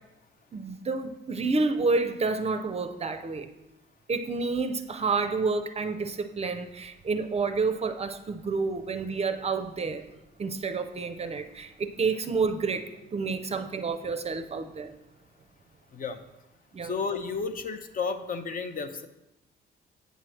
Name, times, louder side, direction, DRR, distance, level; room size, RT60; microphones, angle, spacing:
voice 1, 0.5-3.5 4.1-10.1 10.4-14.9 16.7-17.0, right 4 dB, 30° right, 9 dB, 0.5 m, -29 dB
voice 2, 15.9-16.2 16.8-19.1, left 5 dB, 45° left, 9 dB, 0.6 m, -32 dB
8.0 x 3.1 x 6.2 m, 0.95 s
cardioid pair, 90°, 20 cm